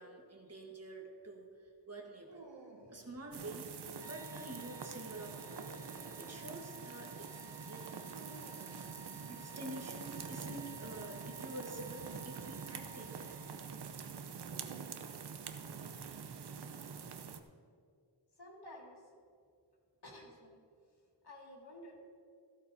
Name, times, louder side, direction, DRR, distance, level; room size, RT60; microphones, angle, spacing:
voice 1, 0.0-2.5 2.9-3.7 4.0-5.6 6.2-8.2 9.3-13.4, right 1 dB, 35° right, 1 dB, 1.5 m, -48 dB
Dog, 2.2-3.2 5.1-6.6 8.1-8.9, right 2 dB, 85° right, 1.8 m, -55 dB
sound 1, 3.3-17.4, right 6 dB, 65° right, 0.8 m, -46 dB
sound 2, 4.0-14.0, right 1 dB, 10° right, 0.3 m, -55 dB
voice 2, 18.4-19.0 20.0-20.6 21.2-22.1, left 1 dB, 60° left, -2 dB, 2.4 m, -52 dB
14.5 x 13.0 x 2.7 m, 2.2 s
wide cardioid pair, 110°, 43 cm